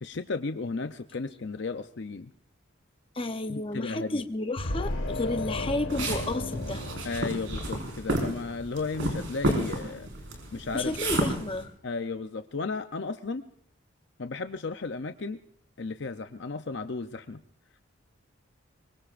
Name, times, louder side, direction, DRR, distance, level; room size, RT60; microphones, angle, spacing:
voice 1, 0.0-2.3 3.5-4.2 7.0-10.1 10.5-10.9 11.8-13.4 14.2-15.4 15.8-17.4, left 3 dB, 60° left, 8 dB, 0.6 m, -34 dB
voice 2, 3.1-6.8 10.7-11.7, left 2 dB, 25° left, 7 dB, 0.8 m, -32 dB
sound 1, 4.6-8.0, left 2 dB, 80° left, 1.7 m, -34 dB
sound 2, 5.9-11.6, right 1 dB, 70° right, 5.0 m, -31 dB
24.5 x 22.5 x 2.5 m, 0.64 s
head